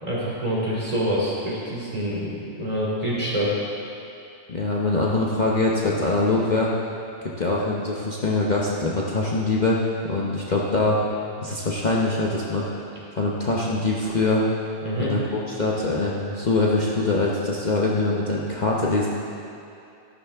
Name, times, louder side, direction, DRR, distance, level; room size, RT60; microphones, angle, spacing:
voice 1, 0.0-3.5 14.8-15.1, equal, 30° right, -6 dB, 3.0 m, -26 dB
voice 2, 4.5-6.7 7.4-11.0 11.4-12.9 13.1-14.4 15.0-19.1, left 2 dB, 40° left, -4 dB, 1.0 m, -23 dB
13.5 x 11.5 x 3.5 m, 2.6 s
omnidirectional pair, 1.2 m